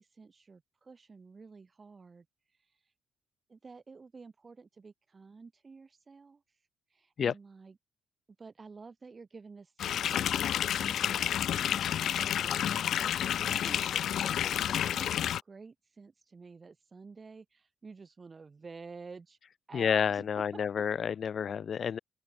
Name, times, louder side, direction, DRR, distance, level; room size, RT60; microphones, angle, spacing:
voice 1, 0.0-2.3 3.5-6.4 6.9-7.8 8.4-13.1 13.4-19.4 19.7-20.3 20.7-21.1, right 4 dB, 30° right, 6.2 m, -51 dB
sound 1, 9.8-15.4, left 10 dB, 70° left, 0.3 m, -30 dB
voice 2, 19.7-22.0, left 7 dB, 50° left, 2.2 m, -30 dB
open air
cardioid pair, 90°, 0 cm